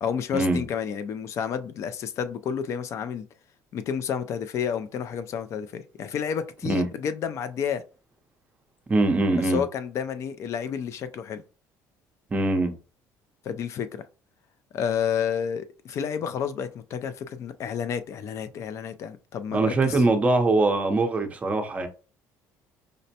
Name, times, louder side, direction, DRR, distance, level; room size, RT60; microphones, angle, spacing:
voice 1, 0.0-3.3 3.7-7.8 9.4-11.4 13.4-13.9 14.7-20.0, left 7 dB, 45° left, 0.4 m, -30 dB
voice 2, 8.9-9.6 12.3-12.7 19.5-21.9, right 2 dB, 20° right, 0.6 m, -22 dB
5.0 x 2.1 x 2.7 m
cardioid pair, 135°, 7 cm